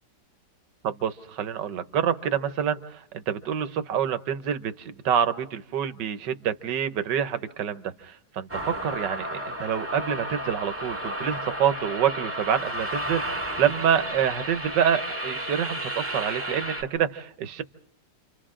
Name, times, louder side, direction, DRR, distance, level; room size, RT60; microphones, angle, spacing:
voice 1, 0.8-17.6, right 8 dB, 85° right, 11 dB, 1.6 m, -27 dB
sound 1, 8.5-16.8, right 1 dB, 10° right, 1.9 m, -32 dB
29.5 x 26.0 x 3.8 m, 0.70 s
omnidirectional pair, 1.9 m